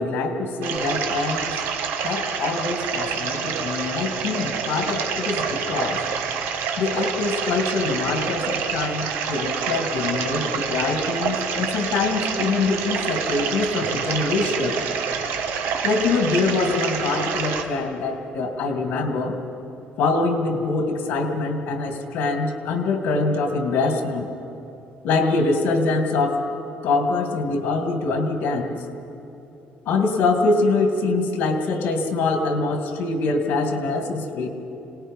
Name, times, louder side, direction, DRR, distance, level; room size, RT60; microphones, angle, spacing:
voice 1, 0.0-1.5 2.0-6.0 6.8-14.8 15.8-19.4 20.0-24.3 25.0-26.4 26.8-28.8 29.9-34.5, left 3 dB, 70° left, 5 dB, 2.5 m, -24 dB
sound 1, 0.6-17.6, right 6 dB, 85° right, 1.7 m, -27 dB
26.5 x 19.0 x 5.6 m, 3.0 s
cardioid pair, 170°, 3 cm